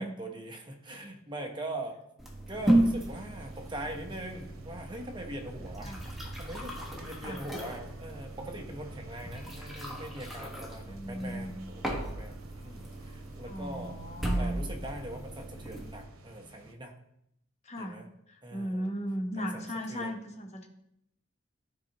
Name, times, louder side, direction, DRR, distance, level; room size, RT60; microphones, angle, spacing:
voice 1, 0.0-2.0 2.5-5.9 6.4-14.0 14.4-16.9 17.8-18.0 18.4-18.9 19.4-19.6 19.9-20.2, right 1 dB, 25° right, 2 dB, 1.0 m, -42 dB
sound 1, 2.2-16.0, right 1 dB, ahead, 1.2 m, -34 dB
sound 2, 2.5-16.7, right 2 dB, 90° right, 0.8 m, -52 dB
voice 2, 10.9-11.6 13.4-14.5 17.6-18.0 18.3-20.7, equal, 35° left, 2 dB, 1.1 m, -36 dB
13.0 x 4.5 x 3.0 m, 0.77 s
head